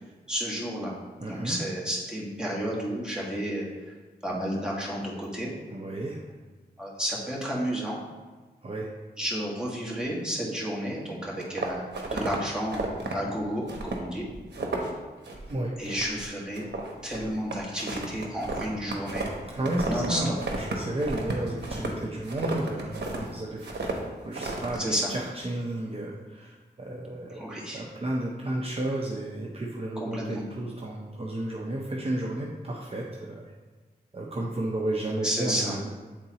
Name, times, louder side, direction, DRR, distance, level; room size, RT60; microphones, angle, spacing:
voice 1, 0.3-0.9 1.3-3.7 4.2-5.5 6.8-8.0 9.2-14.2 15.8-16.7 17.0-19.3 19.8-20.3 24.8-25.1 27.3-27.8 30.0-30.4 35.2-35.8, equal, 5° right, -5 dB, 1.7 m, -31 dB
voice 2, 1.2-1.6 5.7-6.2 8.6-8.9 15.5-15.7 19.4-24.8 25.1-27.4 27.7-33.4 34.1-35.9, right 1 dB, 35° right, -2 dB, 0.7 m, -32 dB
sound 1, 11.4-12.4 12.7-13.1 13.7-14.1 14.3-14.9 15.2-15.5 15.8-16.2 16.5-20.1 20.4-23.2 23.6-24.0 24.3-24.8, right 3 dB, 90° right, 0.9 m, -33 dB
8.7 x 3.9 x 2.9 m, 1.3 s
wide cardioid pair, 75°, 17 cm